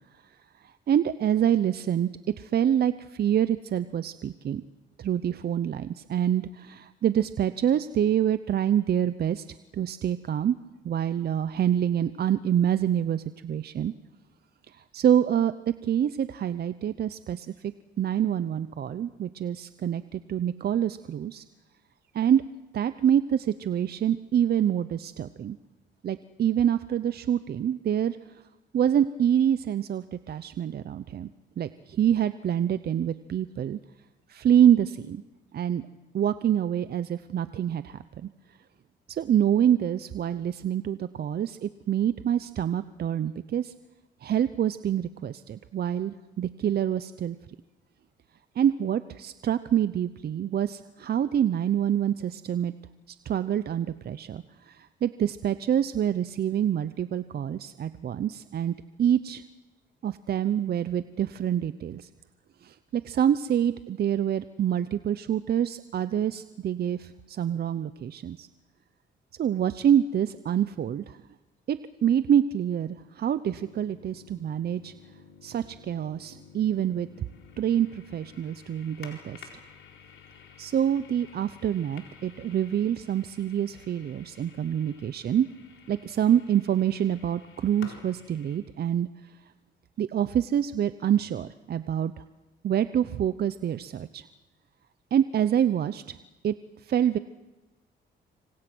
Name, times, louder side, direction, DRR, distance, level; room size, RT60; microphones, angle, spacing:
voice 1, 0.9-2.1 2.4-4.6 5.0-9.4 9.7-10.6 10.8-13.9 14.9-15.5 15.8-17.5 18.0-21.4 22.1-22.4 22.7-25.6 26.0-28.2 28.7-31.3 31.6-33.8 34.3-35.2 35.5-35.8 36.1-38.3 39.1-43.7 44.2-47.4 48.6-52.7 53.1-59.4 60.0-62.1 62.6-68.5 69.4-71.2 71.7-74.9 75.4-77.1 77.6-79.4 80.6-85.5 85.9-89.1 90.0-92.2 92.6-94.2 95.1-96.2 96.4-96.5 96.9-97.2, right 9 dB, 50° right, 13 dB, 0.7 m, -26 dB
sound 1, 73.5-88.6, left 6 dB, 75° left, 4.3 m, -52 dB
26.0 x 26.0 x 6.2 m, 1.1 s
cardioid pair, 90°, 20 cm